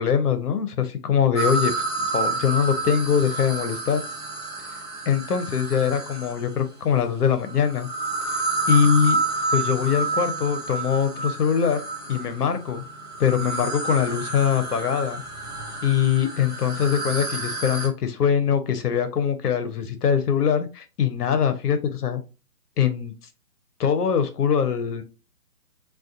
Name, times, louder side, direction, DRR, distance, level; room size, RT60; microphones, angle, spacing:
voice 1, 0.0-1.7 2.0-4.0 5.1-7.9 8.7-9.2 9.5-11.8 12.1-12.8 13.2-15.2 15.8-22.2 22.8-23.1 23.8-25.0, left 7 dB, 70° left, 9 dB, 0.7 m, -22 dB
sound 1, 1.3-6.6 7.4-17.9, right 3 dB, 15° right, 0.7 m, -29 dB
2.4 x 2.3 x 2.5 m, 0.30 s
figure-of-eight pair, 145°, 48 cm